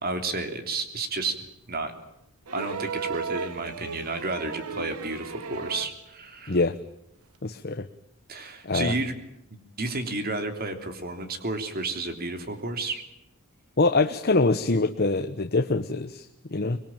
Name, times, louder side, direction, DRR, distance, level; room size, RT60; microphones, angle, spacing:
voice 1, 0.0-1.3 1.7-1.9 2.5-6.6 8.3-9.1 9.5-13.0, right 3 dB, 40° right, 7 dB, 3.3 m, -31 dB
sound 1, 2.5-6.0 7.3-7.4, right 5 dB, 80° right, 1.4 m, -35 dB
voice 2, 7.4-7.9 8.6-8.9 13.8-16.8, left 3 dB, 45° left, 8 dB, 1.0 m, -24 dB
25.0 x 22.0 x 9.0 m, 0.82 s
head